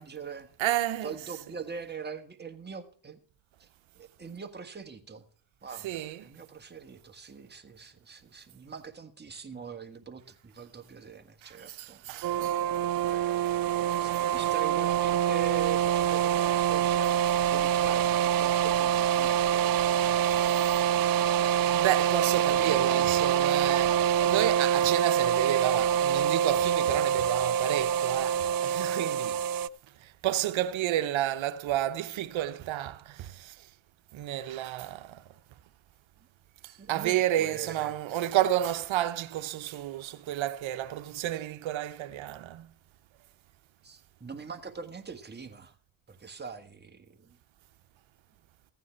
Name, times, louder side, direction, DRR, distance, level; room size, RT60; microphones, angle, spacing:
voice 1, 0.0-0.5 1.0-3.2 3.6-3.7 3.9-5.2 5.6-12.0 13.1-13.7 14.0-17.2 17.5-20.4 36.8-38.0 43.8-45.7 46.1-47.4, right 6 dB, 20° right, 1.6 m, -43 dB
voice 2, 0.6-1.1 5.8-6.3 11.4-12.6 13.4-13.6 20.7-21.2 21.7-29.4 30.0-33.7 34.1-35.2 36.6-42.7, right 13 dB, 65° right, 1.0 m, -31 dB
sound 1, 12.2-29.7, right 9 dB, 45° right, 0.4 m, -25 dB
15.0 x 9.3 x 4.5 m
cardioid pair, 90°, 50 cm